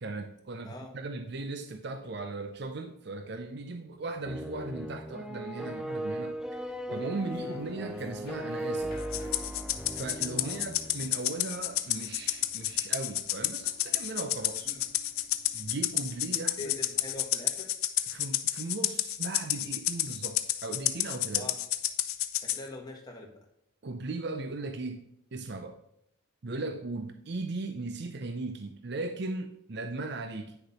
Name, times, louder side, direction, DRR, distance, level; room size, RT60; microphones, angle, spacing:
voice 1, 0.0-9.0 9.9-14.7 15.5-16.7 18.1-21.5 23.8-25.8 26.4-30.6, right 3 dB, 50° right, 7 dB, 0.6 m, -37 dB
sound 1, 4.2-11.2, right 1 dB, 5° right, 0.4 m, -37 dB
Run, 5.6-17.1, left 2 dB, 45° left, 1.6 m, -55 dB
voice 2, 7.3-7.6 10.4-10.7 14.7-14.8 16.6-17.7 21.3-21.6 22.4-23.4, left 2 dB, 20° left, 0 dB, 1.7 m, -43 dB
Rattle (instrument), 9.1-22.6, left 14 dB, 90° left, 0.6 m, -30 dB
9.6 x 6.6 x 4.2 m, 0.79 s
head